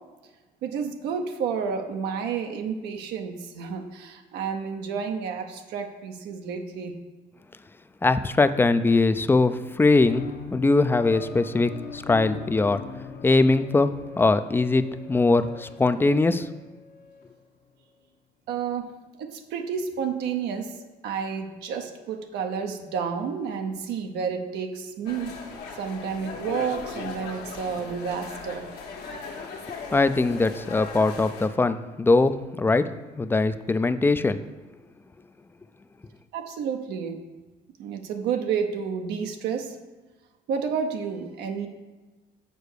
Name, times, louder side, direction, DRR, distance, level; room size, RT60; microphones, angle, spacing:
voice 1, 0.6-6.9 18.5-18.9 19.2-20.7 21.0-25.4 25.8-28.7 36.3-37.2 37.8-39.8 40.5-41.7, right 6 dB, 80° right, 4 dB, 0.8 m, -30 dB
voice 2, 8.0-10.2 10.5-12.8 13.2-13.9 14.2-16.5 29.9-32.9 33.2-34.4, left 3 dB, 15° left, 12 dB, 0.3 m, -21 dB
sound 1, 10.0-17.3, left 6 dB, 55° left, 0.9 m, -41 dB
sound 2, 25.1-31.5, left 4 dB, 75° left, 1.3 m, -38 dB
6.7 x 4.5 x 6.6 m, 1.2 s
cardioid pair, 110°, 17 cm